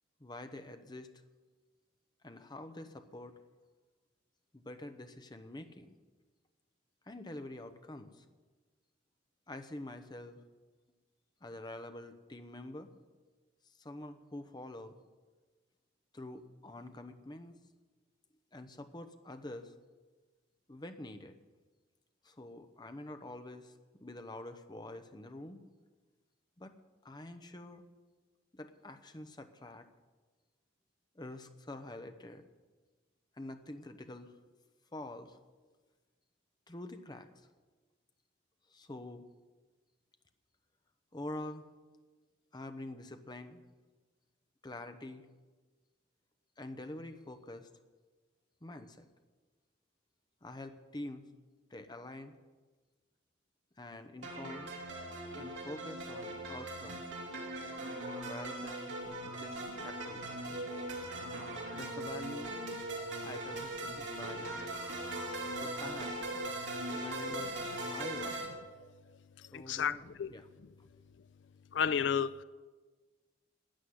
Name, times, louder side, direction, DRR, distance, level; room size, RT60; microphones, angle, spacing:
voice 1, 0.2-1.1 2.2-3.4 4.5-6.0 7.1-8.2 9.5-10.4 11.4-12.9 13.7-14.9 16.1-17.6 18.5-19.7 20.7-21.4 22.2-23.7 24.0-25.6 26.6-26.8 27.0-27.8 28.5-29.9 31.1-32.5 33.4-34.4 34.9-35.4 36.7-37.5 38.7-39.2 41.1-41.7 42.5-43.6 44.6-45.3 46.6-47.7 48.6-49.1 50.4-51.3 51.7-52.3 53.8-54.7 55.3-57.0 58.2-58.9 59.2-59.6 59.8-60.5 61.7-62.5 63.2-64.5 65.6-66.2 66.9-67.6 67.9-68.4 69.5-70.5 70.8-71.1, left 1 dB, 20° left, 0.9 m, -46 dB
sound 1, 54.2-68.5, right 1 dB, 75° right, 2.8 m, -40 dB
voice 2, 69.4-70.3 71.7-72.4, left 7 dB, 65° left, 0.4 m, -32 dB
13.0 x 8.1 x 9.5 m
head